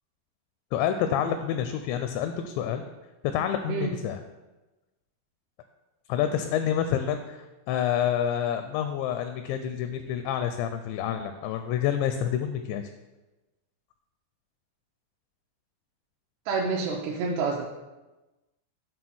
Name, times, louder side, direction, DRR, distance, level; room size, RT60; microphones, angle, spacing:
voice 1, 0.7-2.8 3.3-4.2 6.1-12.8, left 9 dB, 85° left, 8 dB, 2.6 m, -28 dB
voice 2, 16.5-17.6, right 4 dB, 80° right, -3 dB, 2.5 m, -28 dB
8.6 x 3.9 x 6.1 m, 1.1 s
omnidirectional pair, 5.5 m